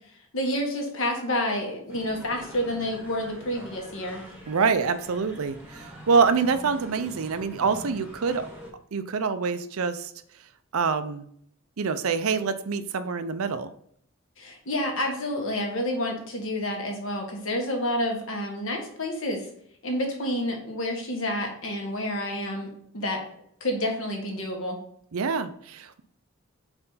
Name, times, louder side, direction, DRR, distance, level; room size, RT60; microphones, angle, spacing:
voice 1, 0.3-4.2 14.4-19.5 19.8-22.7 22.9-23.2 23.6-24.8, left 1 dB, 60° left, 2 dB, 1.4 m, -29 dB
sound 1, 1.9-8.7, equal, 5° right, 1.0 m, -44 dB
voice 2, 4.5-8.5 8.9-10.1 10.7-11.2 11.8-13.7 25.1-26.0, right 5 dB, 75° right, 11 dB, 0.5 m, -26 dB
4.4 x 4.4 x 5.5 m, 0.66 s
head